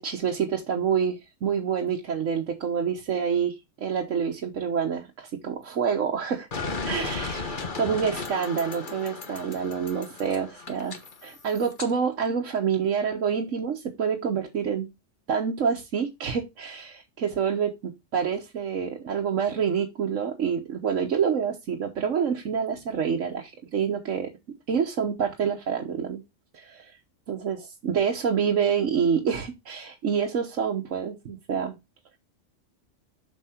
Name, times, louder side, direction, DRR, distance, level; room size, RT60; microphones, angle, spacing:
voice 1, 0.0-6.5 6.8-14.9 15.3-24.3 24.7-26.2 26.5-27.0 27.3-31.8, right 7 dB, 85° right, 1 dB, 1.4 m, -27 dB
sound 1, 6.5-11.9, left 4 dB, 40° left, 1.4 m, -35 dB
7.4 x 6.1 x 4.3 m, 0.23 s
omnidirectional pair, 1.3 m